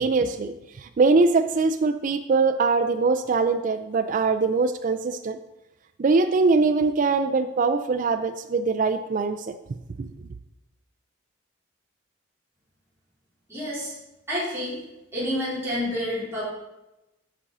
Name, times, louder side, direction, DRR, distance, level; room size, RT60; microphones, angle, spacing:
voice 1, 0.0-5.4 6.0-9.6 10.0-10.1, right 4 dB, 40° right, 8 dB, 0.3 m, -22 dB
voice 2, 13.5-13.9 14.3-14.8 15.1-16.4, equal, 15° right, -10 dB, 3.3 m, -28 dB
8.8 x 6.0 x 3.8 m, 0.97 s
head